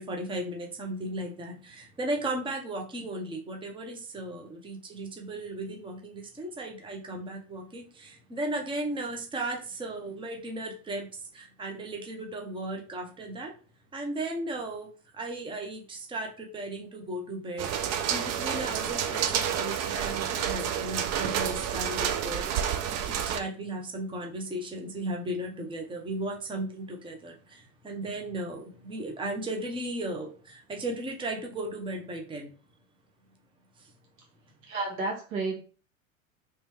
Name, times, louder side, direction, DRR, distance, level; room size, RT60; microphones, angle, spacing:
voice 1, 0.0-13.6 13.9-32.5 33.8-33.9, right 1 dB, 10° right, 2 dB, 0.8 m, -36 dB
sound 1, 17.6-23.4, right 9 dB, 40° right, 0.5 m, -29 dB
voice 2, 34.7-35.6, right 3 dB, 80° right, -1 dB, 1.5 m, -31 dB
3.3 x 2.9 x 3.4 m, 0.39 s
hypercardioid pair, 90°, 40 cm